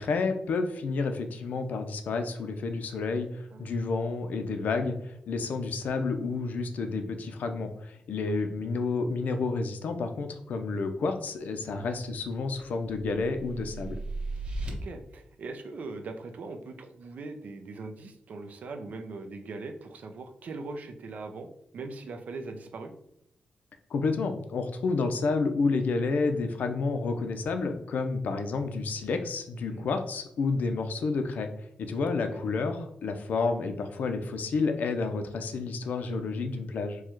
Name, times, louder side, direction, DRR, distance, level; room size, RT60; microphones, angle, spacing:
voice 1, 0.0-14.0 23.9-31.5 31.8-37.0, left 4 dB, 70° left, 7 dB, 0.6 m, -30 dB
sound 1, 12.1-14.7, right 2 dB, 40° right, 1.1 m, -37 dB
voice 2, 14.7-21.5 21.7-22.9 29.5-29.9 32.3-32.4, right 3 dB, 65° right, 6 dB, 0.6 m, -41 dB
4.7 x 2.3 x 4.4 m, 0.77 s
wide cardioid pair, 145°, 3 cm